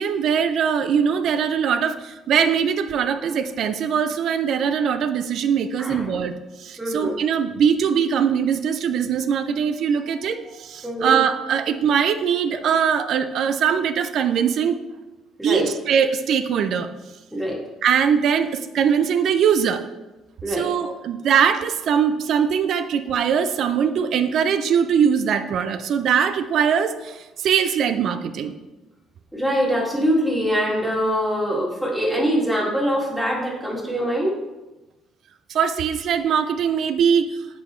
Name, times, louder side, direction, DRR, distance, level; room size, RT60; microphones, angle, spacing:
voice 1, 0.0-6.3 6.6-14.8 15.4-16.9 17.8-19.8 20.5-28.6 35.5-37.4, right 7 dB, 65° right, 10 dB, 0.4 m, -21 dB
voice 2, 5.8-6.1 6.8-7.2 10.1-11.2 15.4-15.7 17.3-17.6 20.4-20.7 29.3-34.3, equal, 5° right, -3 dB, 2.1 m, -24 dB
8.3 x 3.9 x 3.1 m, 1.1 s
supercardioid pair, 75°, 0 cm